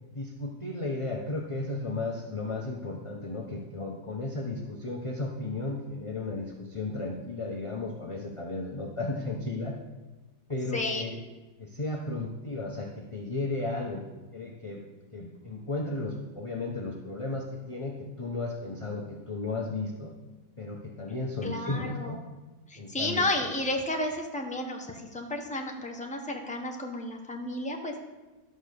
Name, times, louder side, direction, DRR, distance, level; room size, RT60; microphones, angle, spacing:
voice 1, 0.1-9.7 10.5-11.2 11.6-14.0 14.3-14.8 15.1-20.1 20.6-22.2 22.8-23.2, left 2 dB, 25° left, 0 dB, 0.8 m, -34 dB
voice 2, 10.7-11.0 21.4-22.1 22.7-28.0, left 1 dB, 5° left, 1 dB, 1.0 m, -32 dB
11.5 x 6.5 x 6.7 m, 1.2 s
omnidirectional pair, 1.9 m